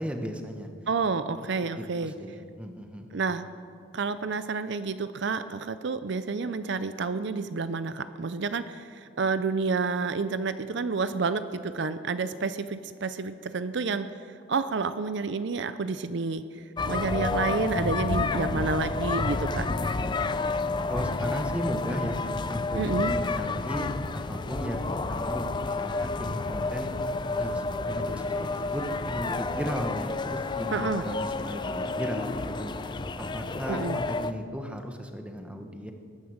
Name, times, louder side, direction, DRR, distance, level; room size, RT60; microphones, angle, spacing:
voice 1, 0.0-0.7 1.8-3.2 20.0-20.3 20.9-22.8 23.0-23.9 24.1-26.9 27.4-32.7 33.3-35.9, equal, 5° right, 4 dB, 1.0 m, -36 dB
voice 2, 0.9-2.1 3.1-3.4 3.9-14.1 14.5-16.4 16.9-19.7 22.7-23.1 30.7-31.0 33.7-34.0, right 4 dB, 60° right, 12 dB, 0.5 m, -29 dB
sound 1, 16.8-34.3, left 3 dB, 25° left, 0.4 m, -30 dB
sound 2, 19.2-32.9, left 2 dB, 85° left, 1.1 m, -46 dB
21.0 x 9.5 x 6.4 m, 2.3 s
head